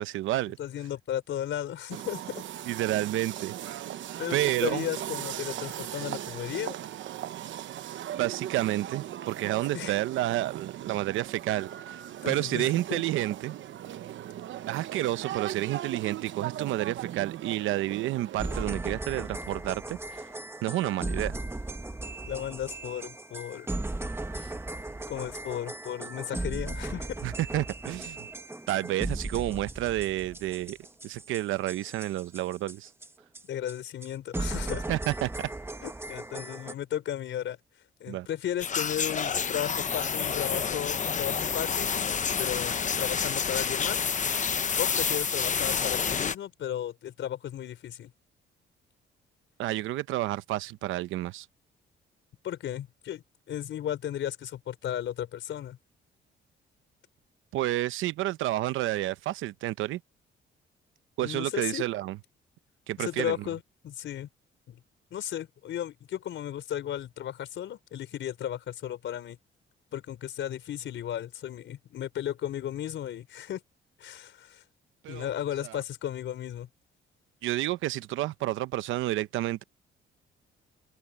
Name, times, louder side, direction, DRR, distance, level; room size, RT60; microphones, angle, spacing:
voice 1, 0.0-0.6 2.7-3.8 4.3-4.9 8.2-13.6 14.7-20.3 20.6-21.4 27.2-28.3 28.7-30.8 31.0-32.9 34.9-35.5 38.1-38.3 49.6-51.5 57.5-60.0 61.2-62.2 62.9-63.4 75.0-75.3 75.6-75.8 77.4-79.6, right 15 dB, 90° right, 0.8 m, -30 dB
voice 2, 0.6-2.4 4.2-4.4 4.6-6.8 9.7-9.9 12.2-13.0 22.3-23.7 24.3-24.4 25.1-27.2 33.5-34.9 35.8-37.6 38.0-41.9 42.4-44.1 44.7-48.1 52.4-55.8 61.2-61.8 63.0-64.3 64.7-64.8 65.1-69.4 69.9-73.6 74.0-74.6 75.1-76.7, left 11 dB, 70° left, 4.6 m, -35 dB
sound 1, 1.9-18.6, right 12 dB, 70° right, 1.0 m, -38 dB
sound 2, 18.4-33.1 33.3-33.4 33.7-33.8 34.0-34.1 34.3-36.7, right 2 dB, 10° right, 1.2 m, -37 dB
sound 3, 38.6-46.4, left 6 dB, 40° left, 1.0 m, -29 dB
cardioid pair, 90°, 20 cm